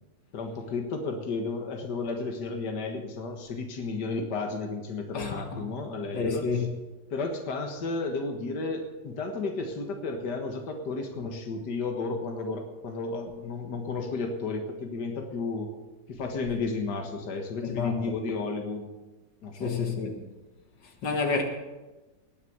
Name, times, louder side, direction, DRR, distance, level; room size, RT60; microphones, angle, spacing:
voice 1, 0.3-6.5 7.1-15.7 16.1-18.9 19.4-19.8, left 3 dB, 70° left, 2.2 m, -33 dB
voice 2, 5.1-5.6 6.1-6.7 17.6-18.0 19.6-20.2 21.0-21.4, left 4 dB, 85° left, 2.3 m, -29 dB
19.5 x 6.9 x 8.0 m
omnidirectional pair, 1.9 m